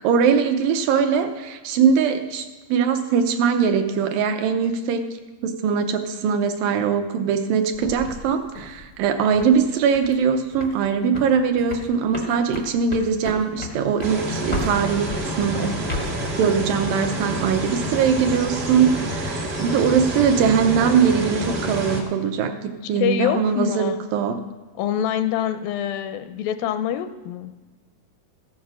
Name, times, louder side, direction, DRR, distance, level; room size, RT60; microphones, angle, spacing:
voice 1, 0.0-5.1 5.4-15.1 15.4-15.8 16.4-24.4, right 6 dB, 75° right, 6 dB, 2.3 m, -21 dB
sound 1, 7.7-9.6 9.9-10.2 10.5-10.8 11.1-15.2 15.7-16.2, left 1 dB, 60° left, 0.4 m, -33 dB
sound 2, 14.0-22.0, right 1 dB, 45° right, 1.2 m, -28 dB
voice 2, 22.8-24.0 24.8-27.5, left 10 dB, 80° left, 9 dB, 2.2 m, -25 dB
14.5 x 7.3 x 6.1 m, 1.3 s
omnidirectional pair, 4.2 m